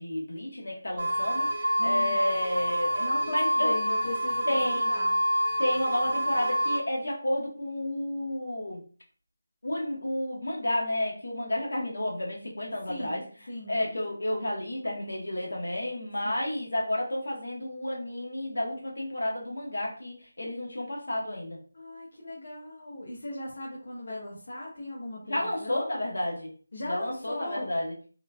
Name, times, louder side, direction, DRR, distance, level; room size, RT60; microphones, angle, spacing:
voice 1, 0.0-3.7 4.5-4.9 5.6-8.8 9.6-13.2 13.7-21.6 25.2-26.5 26.9-27.9, left 1 dB, 70° left, -2 dB, 1.1 m, -31 dB
sound 1, 1.0-6.8, equal, 25° right, 0.6 m, -27 dB
voice 2, 1.8-2.2 3.0-4.6 4.9-5.2 12.9-13.8 16.2-16.4 21.7-26.0 26.7-27.8, left 1 dB, 50° left, -5 dB, 0.8 m, -38 dB
3.0 x 2.2 x 2.3 m, 0.40 s
figure-of-eight pair, 175°, 0 cm